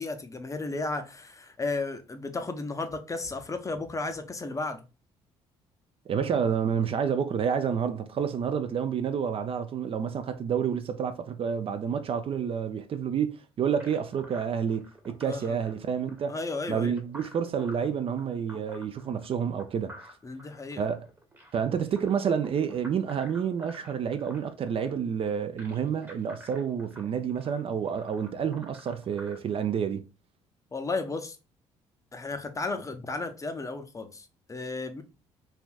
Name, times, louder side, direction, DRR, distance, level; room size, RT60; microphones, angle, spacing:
voice 1, 0.0-4.8 15.2-15.6 16.3-17.0 20.2-20.8 30.7-31.4 32.1-35.0, left 3 dB, 25° left, 0.5 m, -34 dB
voice 2, 6.1-16.4 16.7-19.9 20.8-21.1 21.5-30.0, right 7 dB, 40° right, 0.4 m, -29 dB
sound 1, 13.8-29.4, equal, 15° right, 0.9 m, -51 dB
3.3 x 2.5 x 2.3 m
hypercardioid pair, 55°, 14 cm